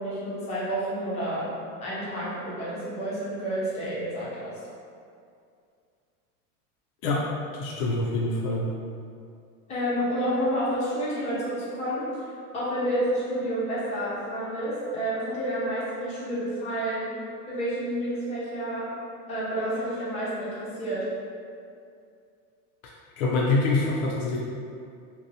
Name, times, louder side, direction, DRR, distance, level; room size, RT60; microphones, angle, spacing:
voice 1, 0.0-1.5 1.8-4.5 9.7-12.0 12.5-17.2 17.5-18.9 19.3-21.0, equal, 15° left, -9 dB, 0.5 m, -29 dB
voice 2, 7.5-8.7 22.8-24.4, left 2 dB, 65° left, -4 dB, 0.5 m, -26 dB
2.7 x 2.2 x 2.6 m, 2.4 s
supercardioid pair, 140°, 46 cm